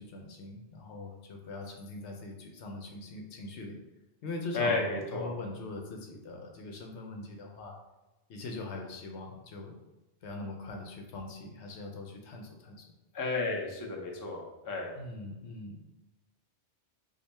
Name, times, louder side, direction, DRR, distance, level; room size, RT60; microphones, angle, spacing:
voice 1, 0.0-3.8 4.2-7.8 8.3-9.8 10.2-12.8 15.0-15.8, left 2 dB, 75° left, 2 dB, 1.0 m, -42 dB
voice 2, 4.5-5.3 13.1-14.9, left 3 dB, 20° left, -1 dB, 0.6 m, -32 dB
5.2 x 2.2 x 4.1 m, 1.1 s
omnidirectional pair, 1.2 m